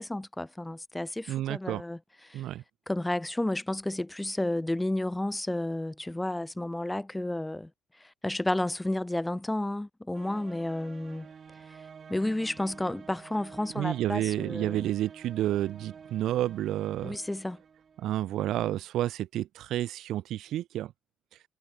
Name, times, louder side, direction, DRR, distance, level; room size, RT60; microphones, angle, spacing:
voice 1, 0.0-2.0 2.3-2.4 2.9-7.7 8.2-11.3 12.1-14.9 17.0-17.6, left 1 dB, 10° left, 1.3 m, -31 dB
voice 2, 1.3-1.8 2.3-2.6 13.8-17.2 18.0-20.9, right 13 dB, 80° right, 1.1 m, -30 dB
sound 1, 10.1-18.5, right 6 dB, 45° right, 6.2 m, -50 dB
cardioid pair, 90°, 0 cm